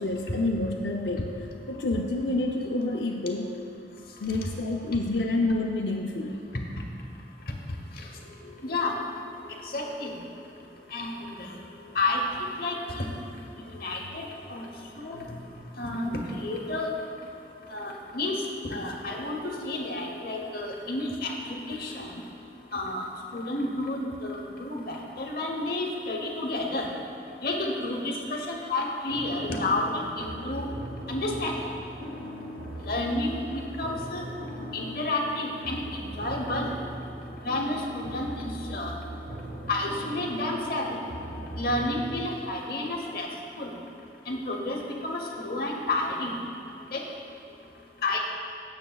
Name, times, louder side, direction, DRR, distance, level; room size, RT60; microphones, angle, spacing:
voice 1, 0.0-1.3 1.7-3.6 4.2-6.4 15.1-15.6, left 2 dB, 80° left, -1 dB, 0.6 m, -28 dB
voice 2, 8.6-9.0 9.6-10.2 10.9-11.6 11.9-13.0 13.8-14.7 15.0-15.2 15.8-16.9 17.7-22.1 22.7-23.0 23.3-26.9 27.4-30.7 31.1-31.7 32.8-34.3 34.7-36.7 37.4-38.9 39.7-41.0 41.6-43.3 43.6-43.7 44.3-46.4 46.9-47.0 48.0-48.2, left 2 dB, 55° left, 1 dB, 1.0 m, -31 dB
sound 1, 29.1-42.2, equal, 75° right, 1.0 m, -39 dB
17.0 x 6.8 x 2.3 m, 2.6 s
head